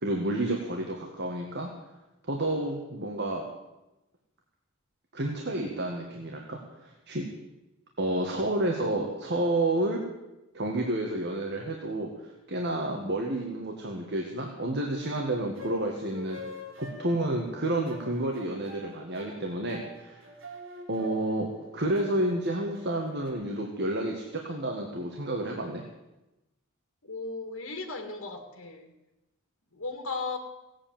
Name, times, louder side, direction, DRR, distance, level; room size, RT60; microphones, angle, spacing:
voice 1, 0.0-1.7 2.3-3.4 5.1-7.2 8.0-10.0 10.5-16.4 16.8-20.2 20.9-21.5 21.7-25.8, right 1 dB, 55° right, 1 dB, 1.9 m, -30 dB
sound 1, 14.8-23.3, left 2 dB, 70° right, 3.5 m, -46 dB
voice 2, 27.0-28.9 29.7-30.4, left 3 dB, 70° left, 4 dB, 2.2 m, -36 dB
17.0 x 8.7 x 9.0 m, 1.0 s
head